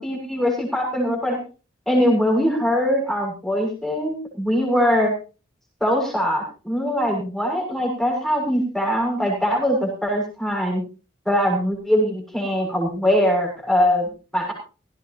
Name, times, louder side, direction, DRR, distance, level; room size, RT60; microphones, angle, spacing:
voice 1, 0.0-1.4 1.9-5.1 5.8-10.8 11.2-14.0 14.3-14.5, equal, ahead, 0 dB, 6.7 m, -22 dB
17.5 x 17.0 x 3.0 m, 0.35 s
head